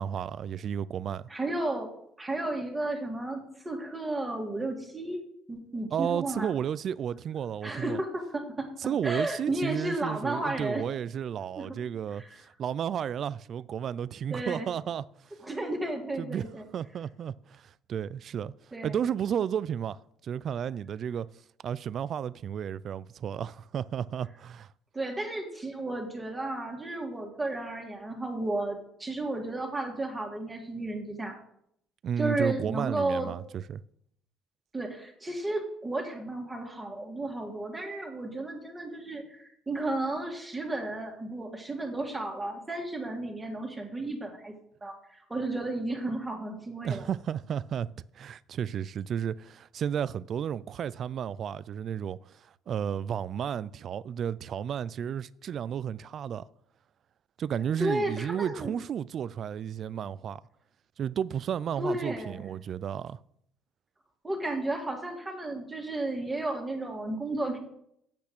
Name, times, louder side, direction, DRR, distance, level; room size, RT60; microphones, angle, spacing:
voice 1, 0.0-1.2 5.9-8.0 8.8-15.1 16.2-16.4 16.7-18.5 18.8-20.0 20.2-21.3 21.6-24.7 32.0-33.8 46.8-47.9 48.1-56.5 57.4-60.4 61.0-63.2, right 8 dB, 50° right, 0.3 m, -33 dB
voice 2, 1.3-1.9 2.2-5.2 5.5-6.5 7.6-10.8 11.6-11.8 12.2-12.3 14.3-14.7 15.4-16.6 18.7-19.0 24.9-31.4 32.2-33.3 34.7-44.5 44.8-47.1 57.8-58.7 61.8-62.5 64.2-67.6, right 2 dB, 15° right, 2.0 m, -33 dB
8.6 x 5.8 x 6.1 m
cardioid pair, 115°, 0 cm